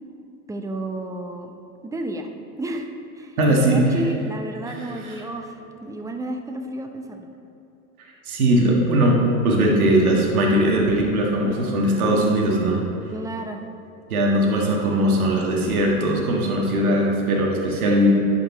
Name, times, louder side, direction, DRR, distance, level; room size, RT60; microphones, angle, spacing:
voice 1, 0.5-1.5 1.8-2.3 2.6-2.9 3.1-7.3 13.1-13.6, right 1 dB, 10° right, 4 dB, 0.5 m, -32 dB
voice 2, 3.4-3.8 4.7-4.8 5.0-5.1 8.0-12.8 14.1-18.1, right 1 dB, 85° right, -2 dB, 1.7 m, -20 dB
10.5 x 5.1 x 3.9 m, 3.0 s
hypercardioid pair, 100°, 42 cm